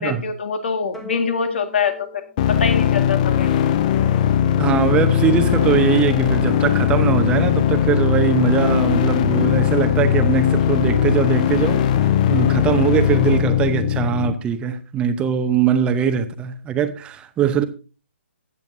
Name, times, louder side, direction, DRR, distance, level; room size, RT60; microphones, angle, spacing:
voice 1, 0.0-2.2 2.5-3.5, left 5 dB, 60° left, 1.9 m, -24 dB
sound 1, 0.9-3.5, left 1 dB, ahead, 1.1 m, -41 dB
sound 2, 2.4-14.3, left 9 dB, 35° left, 0.8 m, -19 dB
voice 2, 4.6-12.0 12.3-17.6, right 8 dB, 15° right, 0.9 m, -21 dB
16.0 x 9.8 x 2.7 m
figure-of-eight pair, 135°, 7 cm